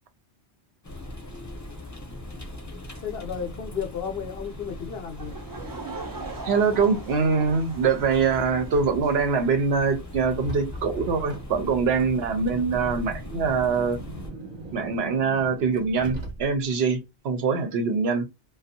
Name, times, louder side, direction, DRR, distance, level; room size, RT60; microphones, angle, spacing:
sound 1, 0.8-14.3, left 1 dB, 20° left, 0.7 m, -40 dB
voice 1, 3.0-5.3, left 7 dB, 65° left, 0.8 m, -33 dB
Laughter / Crowd, 5.1-9.4, right 3 dB, 30° right, 0.4 m, -40 dB
voice 2, 6.4-14.0 14.7-18.3, right 5 dB, 70° right, 0.8 m, -24 dB
Car, 10.3-16.8, right 1 dB, 45° right, 1.0 m, -40 dB
2.5 x 2.3 x 2.6 m
omnidirectional pair, 1.1 m